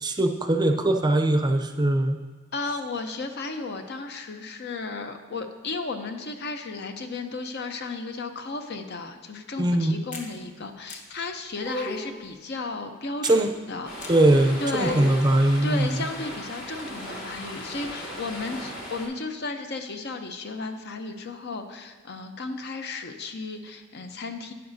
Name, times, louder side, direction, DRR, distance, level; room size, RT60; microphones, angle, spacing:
voice 1, 0.0-2.2 9.6-10.0 13.2-13.5 14.1-16.0, right 1 dB, 20° right, 5 dB, 0.5 m, -21 dB
voice 2, 2.5-13.9 14.6-15.1 15.6-24.5, left 3 dB, 55° left, 6 dB, 0.7 m, -34 dB
sound 1, 10.1-10.3 10.9-11.0 11.6-12.2 13.2-13.4 14.0-14.1 14.7-15.3, left 1 dB, 40° left, 1.1 m, -33 dB
Stream, 13.8-19.1, equal, 75° left, 3.4 m, -38 dB
12.0 x 9.6 x 2.7 m, 1.3 s
head